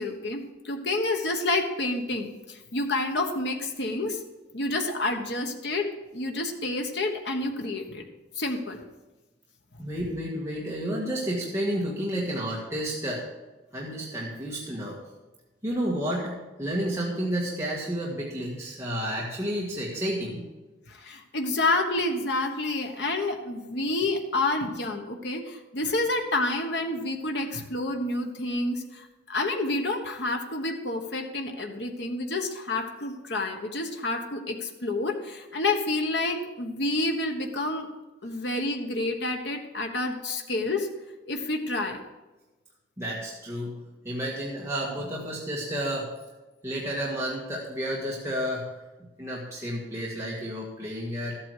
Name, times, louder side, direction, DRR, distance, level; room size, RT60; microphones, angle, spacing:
voice 1, 0.0-4.2 4.5-8.0 8.4-8.8 20.9-37.9 38.2-40.9 41.3-42.0, left 2 dB, 65° left, 3 dB, 1.2 m, -29 dB
voice 2, 9.8-13.2 13.7-15.0 15.6-20.4 43.0-43.8 44.0-46.1 46.6-51.4, equal, 15° right, -5 dB, 1.6 m, -31 dB
13.5 x 8.6 x 4.9 m, 1.1 s
head